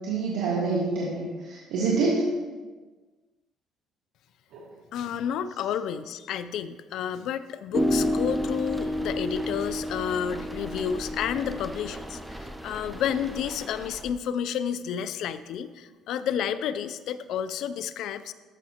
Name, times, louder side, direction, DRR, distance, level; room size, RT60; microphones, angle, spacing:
voice 1, 0.0-2.3 4.5-4.6, right 4 dB, 85° right, -6 dB, 1.6 m, -26 dB
voice 2, 4.9-18.3, left 8 dB, 70° left, 13 dB, 0.4 m, -31 dB
sound 1, 7.7-14.1, equal, 5° right, 0.5 m, -31 dB
13.0 x 5.8 x 2.9 m, 1.3 s
cardioid pair, 130°, 0 cm